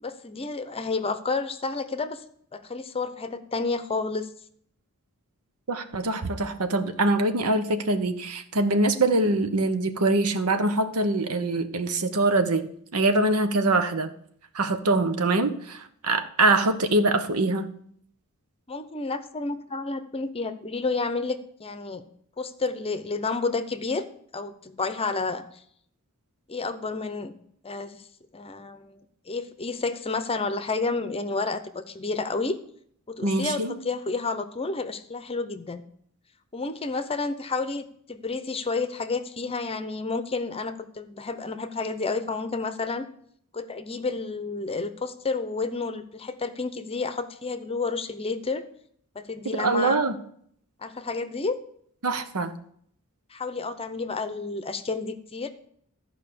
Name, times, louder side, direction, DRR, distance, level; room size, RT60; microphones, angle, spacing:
voice 1, 0.0-2.2 2.5-4.3 18.7-22.0 22.4-24.0 24.3-25.6 26.5-27.3 27.6-28.0 28.3-32.6 33.1-35.8 36.5-43.1 43.5-48.6 49.1-50.0 50.8-51.6 53.3-55.5, left 3 dB, 25° left, 11 dB, 0.7 m, -30 dB
voice 2, 5.7-14.1 14.5-17.7 33.2-33.7 49.5-50.2 52.0-52.5, right 2 dB, 80° right, 9 dB, 1.0 m, -24 dB
13.5 x 5.1 x 6.9 m, 0.65 s
head